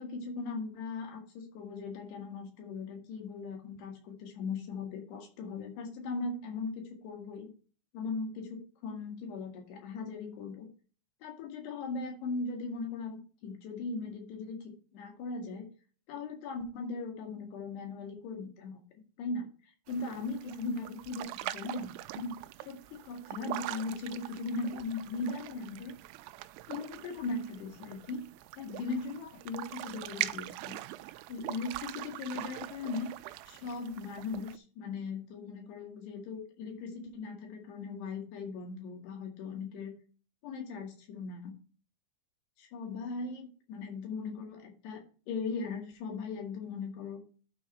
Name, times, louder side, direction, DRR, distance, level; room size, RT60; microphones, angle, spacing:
voice 1, 0.0-7.5 7.9-10.7 11.2-15.7 16.1-18.8 19.2-21.9 22.2-22.3 22.6-25.9 26.7-28.2 28.6-30.8 31.3-33.1 33.5-39.9 40.4-41.5 42.6-47.2, left 3 dB, 65° left, 2 dB, 3.9 m, -39 dB
sound 1, 19.9-34.6, right 16 dB, 85° right, 2.9 m, -42 dB
12.0 x 5.0 x 4.3 m, 0.38 s
omnidirectional pair, 5.3 m